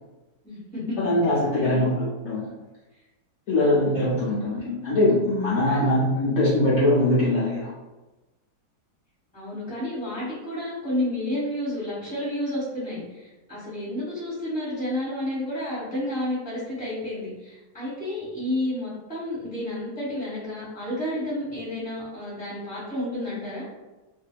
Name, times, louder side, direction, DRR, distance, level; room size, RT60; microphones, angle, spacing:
voice 1, 0.4-1.0 1.5-1.9 3.6-3.9 5.6-5.9 9.3-23.6, left 1 dB, 5° left, -9 dB, 1.2 m, -31 dB
voice 2, 1.0-2.5 3.5-7.7, left 1 dB, 65° left, -9 dB, 0.9 m, -22 dB
2.6 x 2.5 x 2.2 m, 1.1 s
omnidirectional pair, 1.8 m